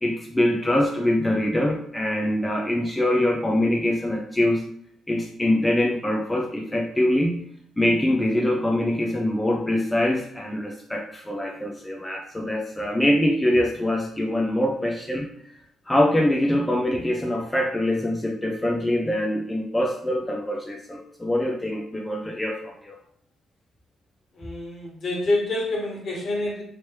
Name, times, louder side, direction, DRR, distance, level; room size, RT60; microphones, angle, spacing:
voice 1, 0.0-4.6 5.1-7.4 7.8-15.3 15.9-22.9, left 1 dB, 10° left, 1 dB, 0.4 m, -24 dB
voice 2, 24.3-26.6, left 2 dB, 55° left, -2 dB, 1.4 m, -27 dB
3.1 x 3.0 x 3.1 m, 0.66 s
cardioid pair, 90°, 0 cm